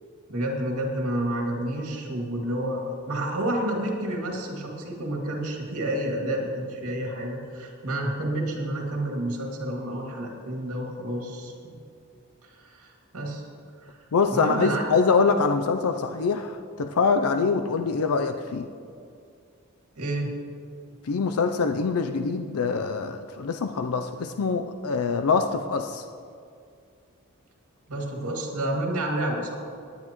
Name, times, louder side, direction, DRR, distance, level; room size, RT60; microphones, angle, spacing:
voice 1, 0.3-11.7 12.4-13.4 13.8-14.0 14.3-14.8 20.0-20.4 27.9-29.6, right 1 dB, 90° right, 0 dB, 2.3 m, -30 dB
voice 2, 14.1-18.7 21.0-26.1, left 4 dB, 75° left, 7 dB, 0.5 m, -24 dB
19.0 x 9.7 x 3.0 m, 2.4 s
head